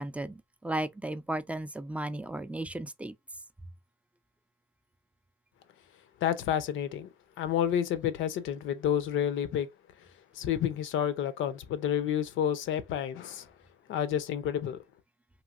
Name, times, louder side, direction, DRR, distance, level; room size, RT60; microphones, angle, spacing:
voice 1, 0.0-3.1, right 1 dB, 5° right, 0.3 m, -35 dB
voice 2, 6.2-7.1 7.4-9.7 10.4-13.4 13.9-14.8, left 9 dB, 75° left, 0.5 m, -30 dB
3.1 x 2.6 x 2.3 m
cardioid pair, 90°, 20 cm